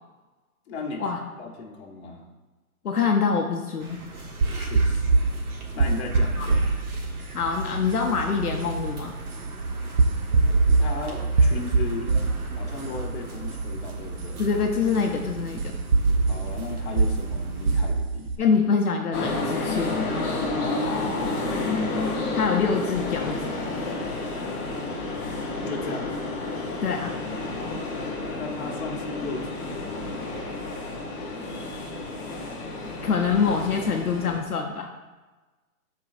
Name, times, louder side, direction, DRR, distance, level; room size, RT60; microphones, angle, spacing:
voice 1, 0.7-1.1 1.4-2.3 4.6-5.0 5.7-6.7 10.8-12.2 12.5-14.4 16.2-18.5 20.4-21.6 25.5-26.1 28.4-30.1, left 3 dB, 45° left, 0 dB, 1.6 m, -36 dB
voice 2, 2.8-4.0 6.4-6.5 7.3-9.2 14.4-15.7 18.4-20.0 22.3-23.4 26.8-27.2 33.0-34.9, left 5 dB, 85° left, 2 dB, 0.9 m, -25 dB
sound 1, 3.8-17.8, right 2 dB, 75° right, 1.8 m, -41 dB
sound 2, 4.4-18.4, right 3 dB, 35° right, 0.5 m, -25 dB
sound 3, 19.1-34.4, left 2 dB, 20° left, 1.0 m, -30 dB
12.5 x 4.7 x 2.6 m, 1.2 s
hypercardioid pair, 140°, 44 cm